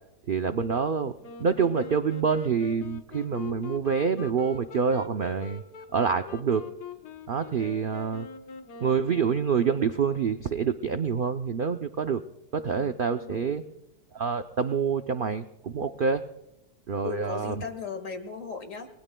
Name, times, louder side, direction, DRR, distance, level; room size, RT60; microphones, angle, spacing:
voice 1, 0.3-1.1 1.4-5.6 5.9-6.6 7.3-8.3 8.8-12.2 12.5-13.6 14.1-16.3 16.9-17.6, right 6 dB, 70° right, 8 dB, 0.5 m, -27 dB
Wind instrument woodwind instrument, 1.2-10.0, left 6 dB, 80° left, 1.7 m, -43 dB
voice 2, 12.7-13.5 17.0-18.9, left 5 dB, 50° left, 7 dB, 2.1 m, -37 dB
29.0 x 20.5 x 2.2 m, 0.89 s
omnidirectional pair, 1.7 m